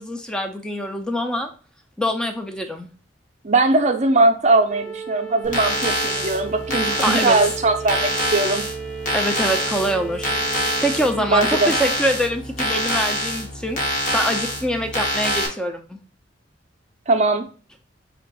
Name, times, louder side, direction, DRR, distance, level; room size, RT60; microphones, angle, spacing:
voice 1, 0.0-1.5 2.0-2.9 7.0-7.4 9.1-10.3 10.6-16.0, equal, 5° left, 4 dB, 0.5 m, -24 dB
voice 2, 3.4-8.6 11.2-11.7 17.1-17.5, right 2 dB, 40° right, 6 dB, 0.6 m, -20 dB
sound 1, 4.7-11.4, right 6 dB, 80° left, 1.5 m, -34 dB
sound 2, 5.4-15.5, equal, 45° left, 1.1 m, -25 dB
4.5 x 2.5 x 3.9 m, 0.38 s
head